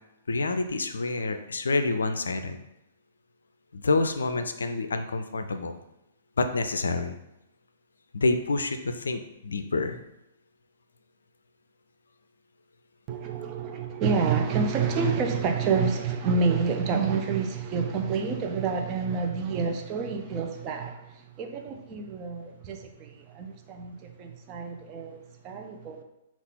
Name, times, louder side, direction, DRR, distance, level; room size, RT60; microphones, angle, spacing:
voice 1, 0.3-2.6 3.7-5.8 6.4-7.2 8.1-10.0, left 3 dB, 75° left, 0.4 m, -27 dB
voice 2, 13.1-26.0, right 5 dB, 30° right, 0.6 m, -28 dB
5.5 x 2.4 x 3.7 m
figure-of-eight pair, 115°, 0 cm